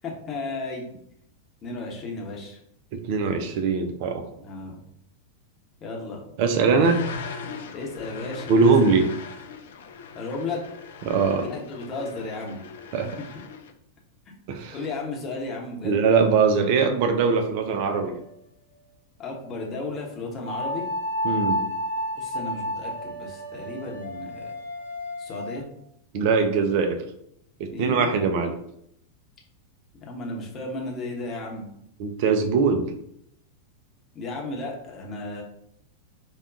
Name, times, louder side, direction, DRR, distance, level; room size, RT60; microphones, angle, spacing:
voice 1, 0.0-0.8 1.6-2.6 4.4-4.8 5.8-6.3 6.6-6.9 7.7-8.7 10.1-10.6 11.4-12.6 14.3-14.4 14.7-16.0 19.2-20.9 22.1-24.6 25.2-25.7 27.7-28.2 30.0-31.7 34.1-35.4, left 3 dB, 30° left, -1 dB, 0.8 m, -34 dB
voice 2, 2.9-4.2 6.4-7.0 8.5-9.1 11.1-11.5 12.9-13.1 14.5-14.8 15.8-18.2 21.2-21.6 26.1-27.0 27.6-28.5 32.0-32.9, right 5 dB, 45° right, 6 dB, 0.4 m, -21 dB
sound 1, 6.8-13.7, left 5 dB, 60° left, 0.3 m, -39 dB
sound 2, 17.7-18.4 20.4-25.6, left 1 dB, 80° right, 0.8 m, -31 dB
4.9 x 2.2 x 2.5 m, 0.74 s
figure-of-eight pair, 90°, 0 cm